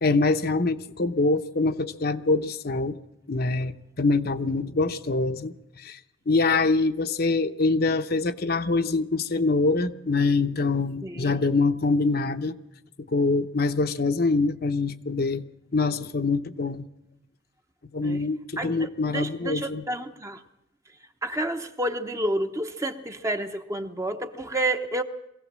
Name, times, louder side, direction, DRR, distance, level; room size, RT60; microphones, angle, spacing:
voice 1, 0.0-3.0 3.3-6.0 6.3-12.6 13.1-15.4 15.7-16.8 17.9-19.8, left 3 dB, 50° left, 0.8 m, -24 dB
voice 2, 11.0-11.3 18.0-18.2 18.6-20.4 21.2-25.0, right 1 dB, 15° right, 0.9 m, -30 dB
22.0 x 16.5 x 7.4 m
head